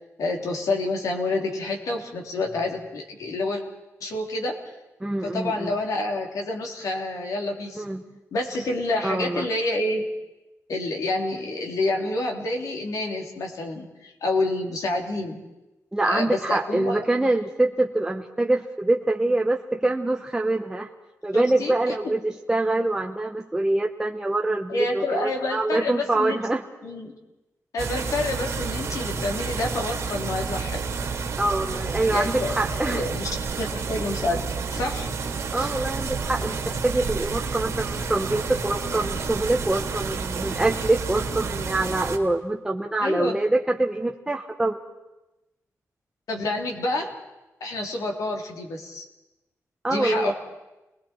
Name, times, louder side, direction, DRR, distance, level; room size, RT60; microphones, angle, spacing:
voice 1, 0.2-3.6 4.0-4.6 5.2-7.8 8.3-10.1 10.7-15.4 16.0-17.1 21.3-21.7 22.0-22.2 24.7-26.4 26.8-27.1 27.7-30.8 32.1-32.6 32.8-33.3 33.6-35.1 35.6-35.7 43.0-43.4 46.3-47.1 47.6-49.0 49.9-50.3, left 2 dB, 80° left, 1 dB, 3.2 m, -28 dB
voice 2, 5.0-5.7 7.8-8.0 9.0-9.5 15.9-20.9 21.2-26.6 31.4-33.1 35.5-44.8 49.8-50.3, right 2 dB, 10° right, 1 dB, 0.8 m, -25 dB
sound 1, 27.8-42.2, right 5 dB, 60° right, 2.1 m, -30 dB
30.0 x 20.5 x 4.4 m, 1.0 s
wide cardioid pair, 160°, 6 cm